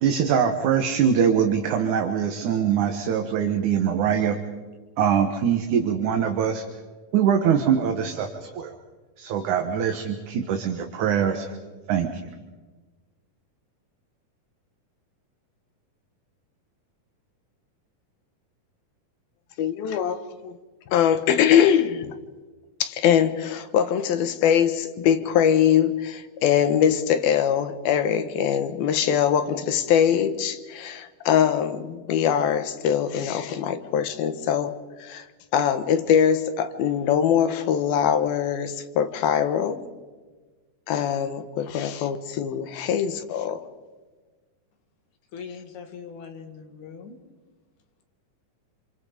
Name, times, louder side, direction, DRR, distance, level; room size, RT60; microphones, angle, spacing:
voice 1, 0.0-4.4 5.0-6.6 7.1-8.7 9.2-11.5 11.9-12.1, right 8 dB, 65° right, 5 dB, 2.7 m, -23 dB
voice 2, 19.6-20.2 20.4-20.5 20.9-22.1 22.8-34.7 35.0-35.2 35.5-39.8 40.9-43.6, left 9 dB, 85° left, 10 dB, 3.1 m, -22 dB
voice 3, 45.3-47.2, left 6 dB, 60° left, 5 dB, 3.5 m, -40 dB
28.0 x 26.5 x 5.1 m, 1.3 s
omnidirectional pair, 4.2 m